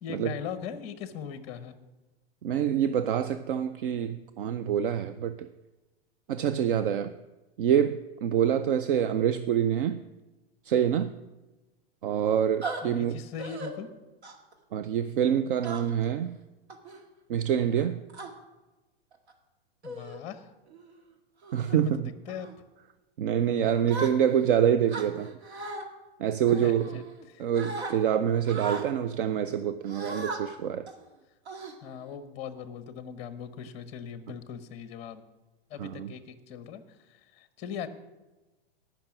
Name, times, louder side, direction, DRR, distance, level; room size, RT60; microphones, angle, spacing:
voice 1, 0.0-1.7 12.8-13.9 19.8-20.5 21.7-21.9 22.3-22.5 26.6-27.0 27.3-27.5 31.8-35.2 35.7-37.9, left 8 dB, 20° left, 12 dB, 0.8 m, -40 dB
voice 2, 2.4-5.5 6.3-7.1 7.6-10.0 10.6-11.1 12.0-13.1 14.7-16.3 17.3-18.0 21.5-22.0 23.2-25.3 26.2-27.0 27.4-30.9 35.8-36.1, right 9 dB, 55° right, 12 dB, 0.5 m, -26 dB
sound 1, 12.6-12.8 13.4-13.7 14.2-14.5 15.6-16.1 16.7-17.0 17.7-18.3 19.1-19.3 19.8-20.2 20.7-20.9 21.4-21.8 22.3-22.5 23.9-24.5 24.9-25.8 26.5-27.3 27.6-27.9 28.5-28.9 29.9-30.4 30.9-31.0 31.5-32.1, right 3 dB, 90° right, 2.0 m, -38 dB
17.5 x 5.9 x 6.0 m, 1.1 s
hypercardioid pair, 160°, 32 cm